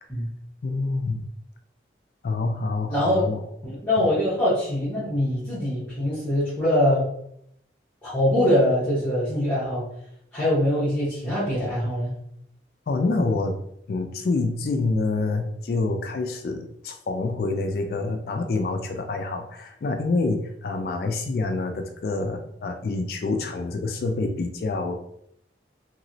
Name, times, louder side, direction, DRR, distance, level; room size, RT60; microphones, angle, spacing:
voice 1, 0.6-1.2 2.2-3.4 4.0-4.1 12.9-13.6 13.9-25.0, left 3 dB, 55° left, 5 dB, 0.3 m, -27 dB
voice 2, 2.9-3.2 3.6-7.0 8.0-9.8 10.3-12.1, left 1 dB, 10° left, -13 dB, 1.1 m, -23 dB
3.0 x 2.9 x 2.6 m, 0.73 s
head